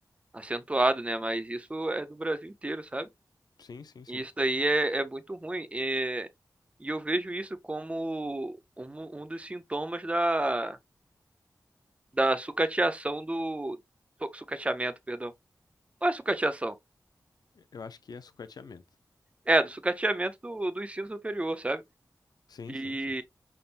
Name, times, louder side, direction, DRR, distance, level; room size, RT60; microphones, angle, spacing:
voice 1, 0.3-3.1 4.1-6.3 6.8-10.8 12.2-13.8 14.2-15.3 16.0-16.7 19.5-21.8 22.7-23.2, right 2 dB, 20° right, 0.6 m, -30 dB
voice 2, 3.6-4.2 17.6-18.8 22.5-23.1, left 5 dB, 80° left, 0.6 m, -45 dB
5.6 x 3.6 x 2.5 m
wide cardioid pair, 120°, 7 cm